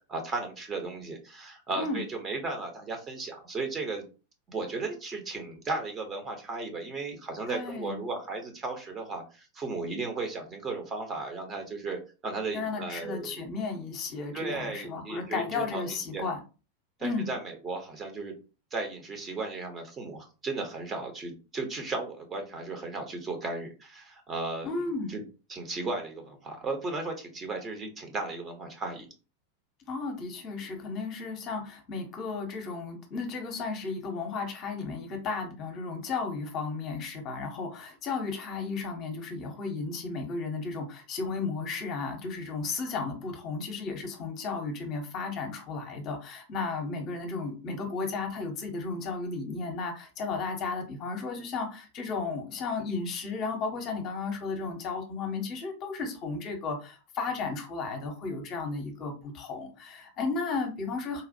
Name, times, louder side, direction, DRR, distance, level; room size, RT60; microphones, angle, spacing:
voice 1, 0.1-4.0 4.5-13.4 14.3-16.2 17.0-18.3 18.7-24.7 25.1-25.2 25.5-29.1, right 3 dB, 20° right, 3 dB, 0.9 m, -35 dB
voice 2, 7.5-8.0 12.5-16.4 17.0-17.3 24.6-25.1 29.9-61.2, left 4 dB, 35° left, 3 dB, 0.8 m, -34 dB
4.1 x 2.4 x 2.6 m, 0.33 s
figure-of-eight pair, 90°, 0 cm